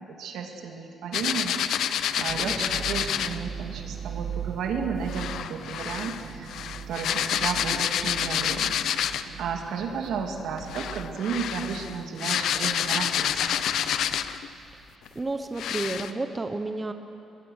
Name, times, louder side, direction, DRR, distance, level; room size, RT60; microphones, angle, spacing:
voice 1, 0.1-6.5 6.9-13.6, right 6 dB, 80° right, 3 dB, 2.5 m, -33 dB
sound 1, 1.1-3.4 5.1-9.4 10.6-14.5 15.1-15.2 15.6-16.1, left 10 dB, 75° left, 0.7 m, -28 dB
sound 2, 2.3-15.2, right 7 dB, 65° right, 1.3 m, -40 dB
voice 2, 2.4-2.8 15.1-16.9, right 2 dB, 25° right, 7 dB, 1.1 m, -31 dB
22.0 x 22.0 x 6.6 m, 2.8 s
cardioid pair, 90°, 0 cm